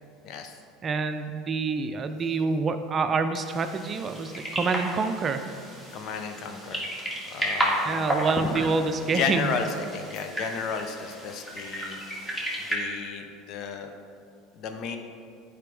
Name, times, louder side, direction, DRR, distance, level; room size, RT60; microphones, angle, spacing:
voice 1, 0.2-0.5 5.9-6.9 7.3-8.3 9.1-12.0 12.6-13.9 14.5-15.0, left 5 dB, 50° left, 6 dB, 0.7 m, -33 dB
voice 2, 0.8-5.5 7.8-9.5, right 4 dB, 30° right, 8 dB, 0.5 m, -27 dB
sound 1, 3.4-12.7, equal, 10° left, 2.0 m, -33 dB
10.5 x 5.0 x 3.4 m, 2.4 s
hypercardioid pair, 75°, 0 cm